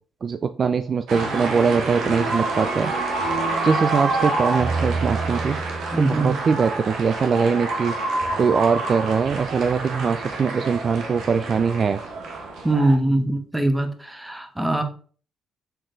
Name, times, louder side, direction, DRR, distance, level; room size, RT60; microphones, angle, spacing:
voice 1, 0.2-2.9 3.6-5.6 6.0-8.0 8.4-12.0, right 5 dB, 50° right, 10 dB, 0.4 m, -22 dB
sound 1, 1.1-13.0, right 3 dB, 75° right, 1.2 m, -27 dB
voice 2, 5.9-6.3 12.6-14.8, right 1 dB, 10° right, 6 dB, 1.3 m, -22 dB
6.7 x 3.8 x 3.9 m, 0.43 s
supercardioid pair, 60°, 0 cm